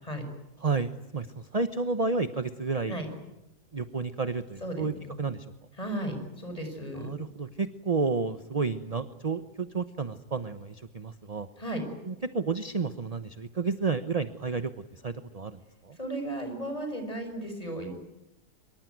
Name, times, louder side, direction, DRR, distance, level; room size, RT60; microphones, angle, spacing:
voice 1, 0.6-3.0 3.7-4.9 5.2-5.5 6.9-11.5 12.0-14.7 15.0-16.0, right 4 dB, 30° right, 10 dB, 0.9 m, -31 dB
voice 2, 4.6-5.1 5.8-7.2 11.6-11.8 16.0-17.9, right 1 dB, 20° left, 6 dB, 6.2 m, -35 dB
25.5 x 23.5 x 9.4 m, 0.92 s
omnidirectional pair, 1.7 m